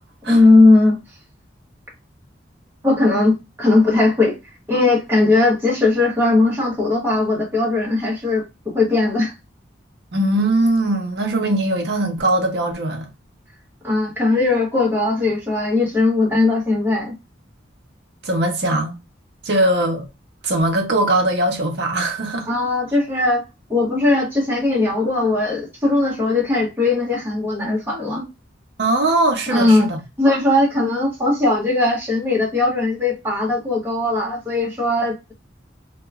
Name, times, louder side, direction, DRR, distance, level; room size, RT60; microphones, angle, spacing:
voice 1, 0.3-1.0 2.8-4.4 4.7-8.4 8.7-9.3 13.8-17.1 22.5-23.4 23.7-28.2 29.5-29.9 30.2-35.3, left 2 dB, 10° right, 0.9 m, -18 dB
voice 2, 10.1-13.1 18.2-19.0 19.4-20.1 20.4-22.5 28.8-30.0, right 1 dB, 60° right, 0.7 m, -20 dB
2.9 x 2.2 x 2.3 m
head